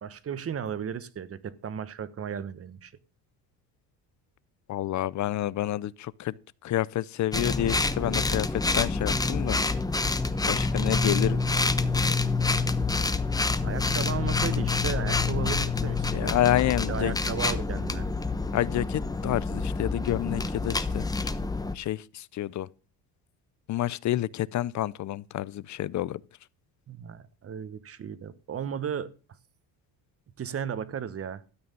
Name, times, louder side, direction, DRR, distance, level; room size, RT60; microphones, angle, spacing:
voice 1, 0.0-2.9 13.6-16.4 16.9-18.1 26.9-29.1 30.4-31.4, right 8 dB, 35° right, 1.1 m, -35 dB
voice 2, 4.7-6.3 6.6-9.6 10.4-11.4 16.1-17.2 18.5-21.3 21.7-22.7 23.7-26.2, left 13 dB, 45° left, 0.6 m, -29 dB
sound 1, 7.3-21.7, left 3 dB, 10° left, 0.9 m, -27 dB
13.0 x 8.8 x 5.3 m
cardioid pair, 125°, 39 cm